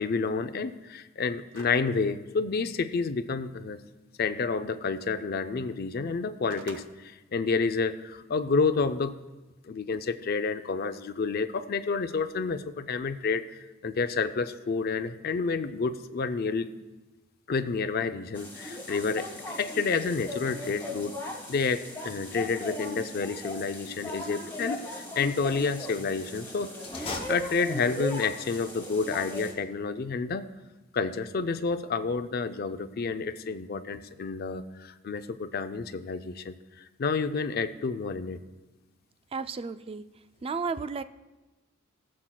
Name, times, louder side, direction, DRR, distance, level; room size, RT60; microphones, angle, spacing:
voice 1, 0.0-3.8 4.2-9.1 9.6-16.7 17.5-30.4 30.9-38.4, left 4 dB, 50° left, 11 dB, 0.4 m, -30 dB
sound 1, 1.5-1.9 2.3-2.4 6.1-6.9, right 4 dB, 65° right, 0.7 m, -44 dB
sound 2, 18.3-29.5, left 1 dB, 10° left, 1.8 m, -38 dB
sound 3, 26.8-28.1, left 3 dB, 25° left, 0.9 m, -39 dB
voice 2, 39.3-40.0 40.4-41.0, right 4 dB, 25° right, 12 dB, 0.3 m, -33 dB
21.0 x 7.4 x 2.3 m, 1.1 s
head